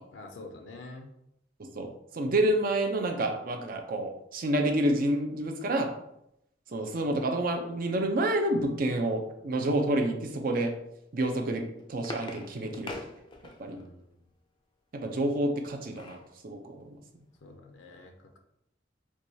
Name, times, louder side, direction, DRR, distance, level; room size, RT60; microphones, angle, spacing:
voice 1, 0.1-1.1 13.7-14.3 17.4-18.4, left 2 dB, 85° left, 4 dB, 0.5 m, -47 dB
voice 2, 1.6-5.9 6.7-10.7 11.1-11.6 11.9-13.0 13.6-13.8 14.9-16.2 16.4-17.0, right 1 dB, 50° right, 4 dB, 0.5 m, -28 dB
sound 1, 11.5-13.9 15.4-16.3 16.8-16.9 17.2-17.4, left 2 dB, 25° left, 0.4 m, -43 dB
4.6 x 2.3 x 2.7 m, 0.80 s
head